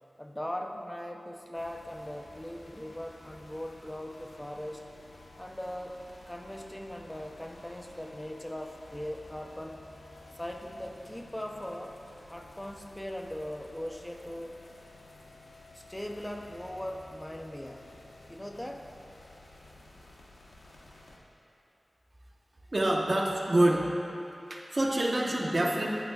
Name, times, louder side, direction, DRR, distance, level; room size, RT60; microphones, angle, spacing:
voice 1, 0.2-4.9 5.4-9.8 10.3-12.0 12.3-14.6 15.7-17.9 18.3-18.9, left 1 dB, 15° left, 3 dB, 0.8 m, -40 dB
sound 1, 1.5-21.2, left 2 dB, 85° left, 1.1 m, -53 dB
voice 2, 22.7-23.9 24.5-25.9, right 1 dB, 45° right, -2 dB, 1.2 m, -26 dB
14.5 x 9.2 x 2.4 m, 2.7 s
wide cardioid pair, 65°, 0 cm